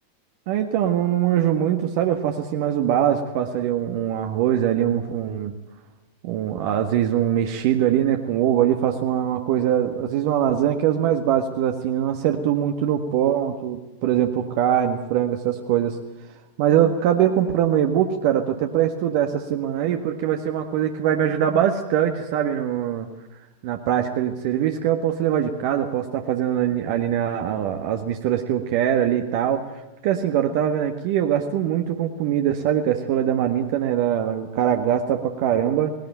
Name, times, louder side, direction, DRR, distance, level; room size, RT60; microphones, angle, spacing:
voice 1, 0.5-5.5 6.2-16.0 16.6-23.1 23.6-35.9, right 10 dB, 50° right, 5 dB, 1.6 m, -22 dB
19.5 x 17.5 x 9.2 m, 1.0 s
figure-of-eight pair, 90°, 0 cm